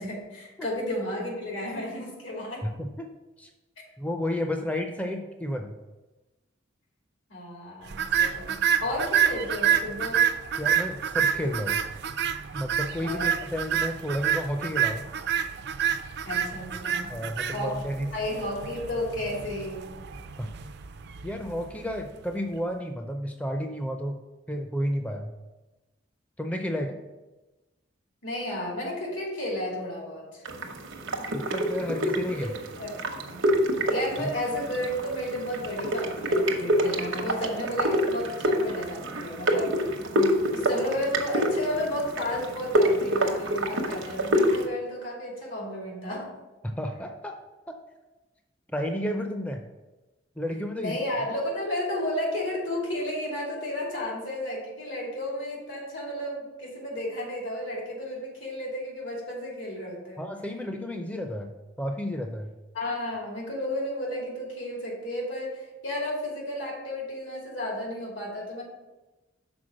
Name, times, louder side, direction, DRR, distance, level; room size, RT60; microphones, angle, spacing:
voice 1, 0.0-2.7 7.3-10.3 13.0-13.3 16.2-17.1 17.5-17.8 18.1-19.9 28.2-30.4 32.3-32.4 32.8-33.4 33.8-46.3 50.8-60.3 62.7-68.6, left 1 dB, 80° left, -2 dB, 2.7 m, -33 dB
voice 2, 2.6-3.1 3.4-3.5 4.0-5.7 10.6-11.8 12.5-15.1 17.1-18.1 20.4-20.5 21.2-24.2 24.5-25.3 26.4-27.0 31.3-32.5 34.2-34.3 46.6-47.4 47.7-47.8 48.7-49.6 50.4-51.0 60.2-62.5, equal, 5° left, 4 dB, 0.5 m, -31 dB
sound 1, 7.9-22.2, right 8 dB, 60° right, 0.4 m, -28 dB
sound 2, 30.4-44.7, equal, 85° right, 0.9 m, -27 dB
6.1 x 4.5 x 6.3 m, 1.1 s
head